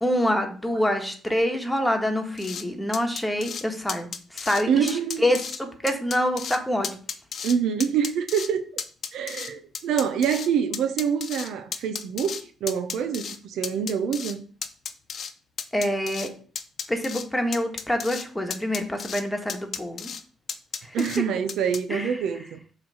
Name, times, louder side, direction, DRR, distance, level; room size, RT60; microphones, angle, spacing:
voice 1, 0.0-6.9 15.7-16.3 16.9-20.1 20.8-21.1 21.9-22.2, equal, 10° left, 1.4 m, -26 dB
sound 1, 2.4-2.6 2.9-3.6 3.9-4.6 4.9-5.6 5.9-6.6 6.8-7.6 7.8-8.5 8.8-10.5 10.7-12.4 12.7-13.4 13.6-14.4 14.6-15.3 15.6-16.3 16.6-17.2 17.5-18.3 18.5-19.2 19.5-20.2 20.5-21.2 21.5-21.8, left 7 dB, 55° left, 0.8 m, -33 dB
voice 2, 4.7-5.2 7.4-8.7 9.1-14.4 20.9-22.6, right 7 dB, 80° right, 0.7 m, -26 dB
7.3 x 3.3 x 6.2 m
cardioid pair, 90°, 0 cm